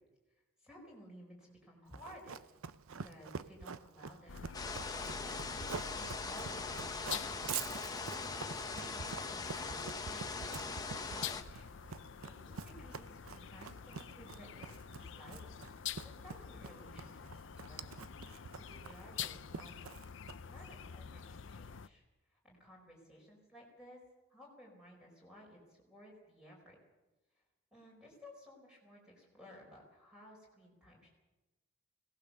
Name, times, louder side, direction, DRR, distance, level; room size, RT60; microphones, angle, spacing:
voice 1, 0.6-2.5 3.0-4.5 4.9-5.7 5.9-11.7 12.2-15.9 16.2-17.3 17.5-19.7 20.4-22.0 22.3-24.0 24.3-26.8 27.7-31.1, equal, 5° right, -2 dB, 4.7 m, -57 dB
Run, 1.9-20.6, right 6 dB, 85° right, 0.7 m, -46 dB
sound 1, 4.3-21.9, left 8 dB, 60° left, 0.6 m, -47 dB
sound 2, 4.5-11.4, left 4 dB, 20° left, 1.1 m, -41 dB
21.5 x 18.0 x 6.8 m, 1.1 s
head